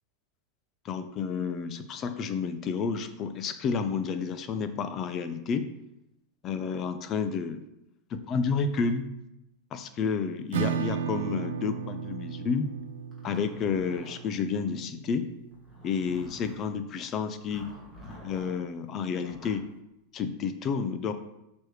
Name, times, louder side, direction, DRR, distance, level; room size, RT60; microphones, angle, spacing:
voice 1, 0.8-5.7 6.4-7.6 8.1-9.1 9.7-12.7 13.2-15.3 15.8-17.7 18.2-19.7 20.1-21.1, left 5 dB, 35° left, 10 dB, 0.6 m, -30 dB
Acoustic guitar / Strum, 10.5-16.0, right 7 dB, 85° right, 0.3 m, -35 dB
Zipper (clothing), 13.1-14.6 15.5-16.7 17.5-18.6 19.2-19.6, left 1 dB, 20° left, 2.3 m, -48 dB
6.1 x 5.2 x 3.3 m, 0.86 s
supercardioid pair, 130°, 0 cm